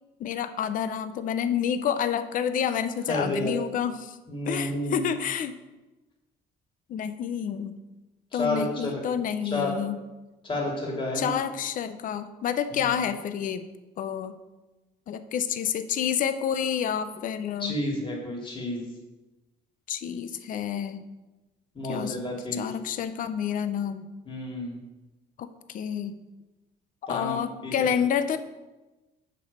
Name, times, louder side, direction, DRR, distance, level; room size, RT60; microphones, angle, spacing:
voice 1, 0.2-4.2 4.5-5.5 6.9-7.8 8.3-10.0 11.1-13.7 14.0-14.4 15.1-17.8 19.9-21.1 21.9-22.2 22.5-24.1 25.4-26.2 27.1-28.4, left 8 dB, 55° left, 11 dB, 0.6 m, -29 dB
voice 2, 3.1-3.5 4.3-5.1 8.3-9.0 9.4-9.7 10.4-11.4 12.7-12.9 17.6-18.9 21.7-22.7 24.3-24.8 27.1-27.7, left 1 dB, 30° left, -2 dB, 2.6 m, -31 dB
6.7 x 5.3 x 6.6 m, 1.1 s
cardioid pair, 110°, 17 cm